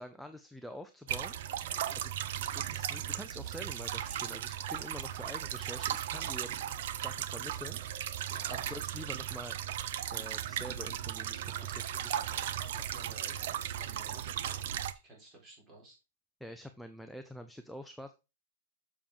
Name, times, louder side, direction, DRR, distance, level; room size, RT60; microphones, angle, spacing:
voice 1, 0.0-1.4 2.0-2.1 2.5-6.6 7.0-7.8 8.5-9.6 10.1-12.1 16.4-18.1, equal, ahead, 6 dB, 0.6 m, -46 dB
sound 1, 1.1-14.9, right 11 dB, 55° right, 0.8 m, -36 dB
voice 2, 11.4-14.7 15.0-16.0, right 2 dB, 20° right, 0 dB, 3.9 m, -54 dB
7.3 x 7.0 x 3.6 m, 0.27 s
supercardioid pair, 165°, 0 cm